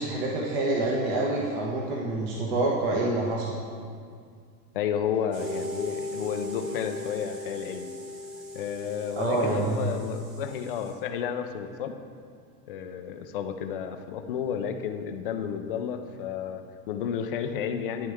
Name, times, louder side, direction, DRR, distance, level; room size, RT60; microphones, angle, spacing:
voice 1, 0.0-3.6 9.2-9.8, right 2 dB, 40° right, -3 dB, 1.3 m, -27 dB
voice 2, 4.7-7.9 8.5-12.0 12.7-18.1, left 8 dB, 35° left, 7 dB, 0.5 m, -32 dB
sound 1, 5.3-10.9, left 1 dB, 55° right, 2.8 m, -38 dB
13.0 x 9.7 x 3.6 m, 2.1 s
supercardioid pair, 175°, 49 cm